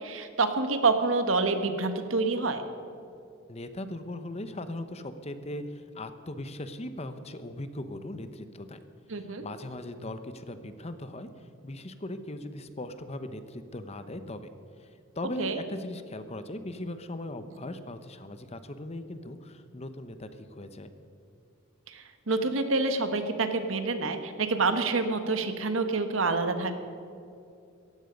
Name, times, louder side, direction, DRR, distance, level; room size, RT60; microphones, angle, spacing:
voice 1, 0.0-2.6 9.1-9.4 15.4-15.6 21.9-26.8, right 3 dB, 70° right, 8 dB, 1.4 m, -27 dB
voice 2, 3.5-8.8 9.1-14.5 14.8-20.9, left 1 dB, 30° left, 10 dB, 0.9 m, -39 dB
17.5 x 14.5 x 5.3 m, 2.6 s
head